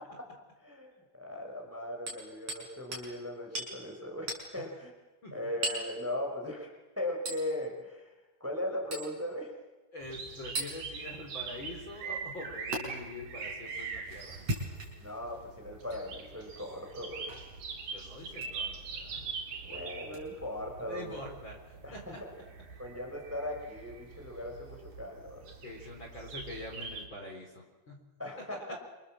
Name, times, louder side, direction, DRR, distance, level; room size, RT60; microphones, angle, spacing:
voice 1, 0.6-4.9 5.3-6.7 7.0-8.1 8.4-9.6 15.0-17.4 19.6-21.2 21.8-22.3 22.8-25.5 28.2-28.8, left 1 dB, 5° right, 2 dB, 4.6 m, -38 dB
Hammer, 2.1-2.7 2.9-3.1 3.5-3.7 4.3-4.5 5.6-5.9 7.3-7.4 8.9-9.1 10.5-10.7 12.7-12.8 14.3-15.1 15.9-16.0 17.3-17.5 18.3-18.5 20.1-20.2, right 1 dB, 45° right, 7.1 m, -36 dB
voice 2, 9.9-14.4 17.9-20.2 20.8-22.2 25.6-28.0 28.4-28.7, left 1 dB, 30° left, 1 dB, 4.3 m, -45 dB
sound 1, 10.0-27.1, right 5 dB, 60° right, 4.6 m, -43 dB
27.5 x 27.5 x 7.6 m, 1.1 s
omnidirectional pair, 4.4 m